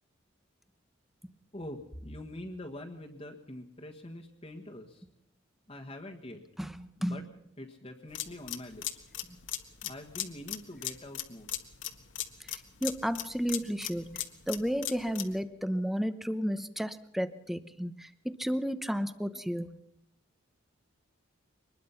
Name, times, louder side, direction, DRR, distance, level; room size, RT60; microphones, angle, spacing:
voice 1, 1.5-5.0 5.7-6.4 7.0-7.2 7.6-9.0 9.8-11.5, left 1 dB, 30° left, 0 dB, 1.5 m, -44 dB
sound 1, 8.1-15.4, left 12 dB, 70° left, 1.6 m, -38 dB
voice 2, 12.5-14.2 14.5-19.7, equal, ahead, 12 dB, 0.9 m, -32 dB
24.0 x 20.5 x 5.7 m, 0.73 s
head